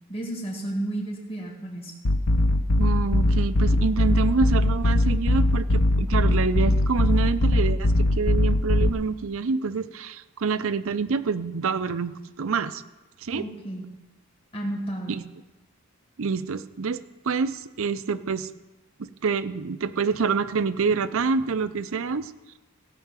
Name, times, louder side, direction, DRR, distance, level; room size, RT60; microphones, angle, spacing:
voice 1, 0.1-1.9 13.3-13.9 14.5-15.1, right 1 dB, 25° left, -1 dB, 2.2 m, -32 dB
sound 1, 2.0-8.9, left 1 dB, 85° left, 1.0 m, -21 dB
voice 2, 2.8-12.8 13.2-13.4 15.1-15.2 16.2-18.5 19.0-22.3, right 5 dB, 65° right, 13 dB, 0.6 m, -27 dB
17.0 x 5.8 x 7.4 m, 1.1 s
head